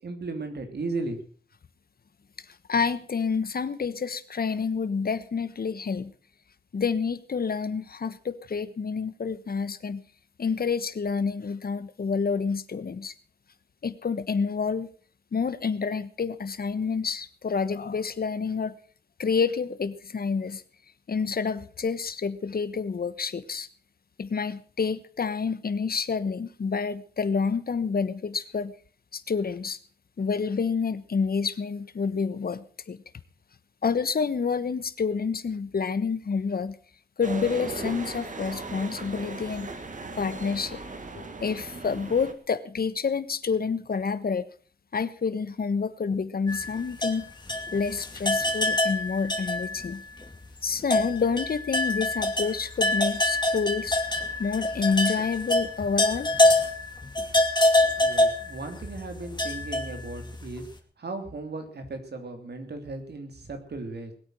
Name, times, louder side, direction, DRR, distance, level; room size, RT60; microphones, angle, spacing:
voice 1, 0.0-1.2 58.0-60.7 61.0-64.1, right 3 dB, 75° right, 6 dB, 3.0 m, -36 dB
voice 2, 2.7-6.1 6.7-10.0 10.4-13.1 13.8-14.9 15.3-18.8 19.2-20.6 21.1-23.7 24.2-28.7 29.1-29.8 30.2-33.0 33.8-36.8 37.2-39.7 40.2-40.8 41.1-44.4 44.9-47.2 47.7-50.0 50.6-54.0 54.4-56.3, left 5 dB, 60° left, 14 dB, 1.2 m, -28 dB
sound 1, 37.2-42.3, right 3 dB, 50° right, 2.0 m, -37 dB
sound 2, 46.5-49.9 50.2-50.3 50.8-60.5, left 1 dB, 25° left, 2.4 m, -25 dB
20.0 x 8.9 x 6.2 m, 0.42 s
wide cardioid pair, 80°, 17 cm